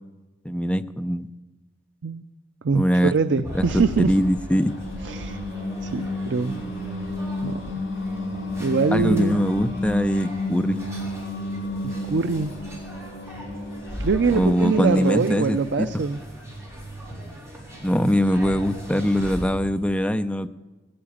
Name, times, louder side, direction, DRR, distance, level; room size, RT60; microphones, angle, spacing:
voice 1, 0.4-1.3 2.7-3.1 3.5-4.7 8.9-10.8 14.3-15.9 17.8-20.5, equal, 5° left, 10 dB, 0.5 m, -22 dB
voice 2, 2.6-4.2 5.0-5.4 5.8-6.6 7.4-7.6 8.6-9.4 11.8-12.5 14.0-16.2, right 4 dB, 70° right, 11 dB, 0.5 m, -23 dB
sound 1, 3.4-19.5, equal, 15° right, 4.1 m, -39 dB
Singing, 4.1-15.3, left 1 dB, 80° left, 4.1 m, -32 dB
18.5 x 8.7 x 8.6 m, 1.2 s
head